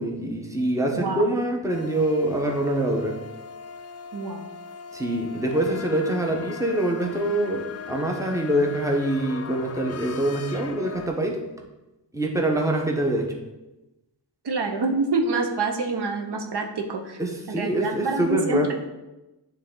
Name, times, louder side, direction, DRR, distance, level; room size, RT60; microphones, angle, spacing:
voice 1, 0.0-3.2 4.9-11.4 12.1-13.3 17.2-18.7, right 1 dB, 5° right, 1 dB, 0.9 m, -25 dB
voice 2, 0.9-1.2 4.1-4.4 14.4-17.2 17.5-18.7, right 3 dB, 65° right, 3 dB, 0.8 m, -26 dB
sound 1, 1.7-11.1, left 6 dB, 40° left, 0.4 m, -39 dB
9.4 x 3.4 x 3.7 m, 1.0 s
wide cardioid pair, 110°, 43 cm